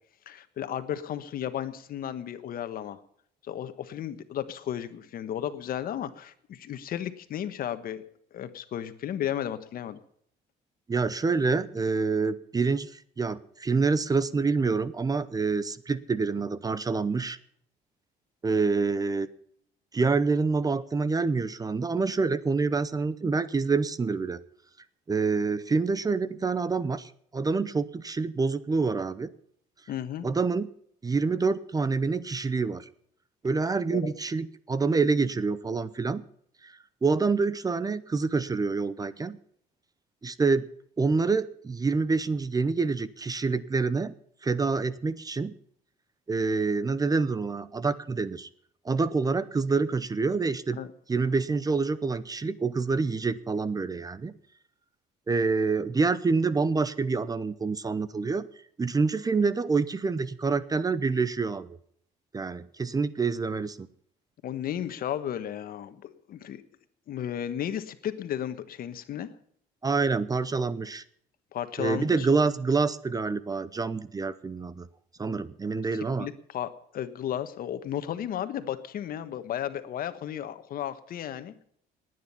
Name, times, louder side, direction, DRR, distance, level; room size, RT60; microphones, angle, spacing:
voice 1, 0.3-3.0 3.4-8.0 8.3-10.0 29.9-30.3 33.9-34.1 50.8-50.9 64.4-66.6 67.1-69.3 71.5-72.3 75.3-75.4 76.2-81.6, left 10 dB, 60° left, 11 dB, 1.4 m, -34 dB
voice 2, 10.9-17.4 18.4-19.3 19.9-24.4 25.1-29.3 30.2-30.7 31.0-32.9 33.4-36.2 36.6-36.7 37.0-39.4 40.2-40.7 41.0-44.1 44.4-45.6 46.3-48.5 48.8-50.8 51.1-54.4 55.3-58.5 58.8-61.8 62.3-63.9 69.8-71.0 71.8-74.9 75.2-76.3, right 4 dB, 20° right, 17 dB, 0.8 m, -27 dB
19.0 x 9.5 x 5.7 m, 0.66 s
cardioid pair, 110°, 17 cm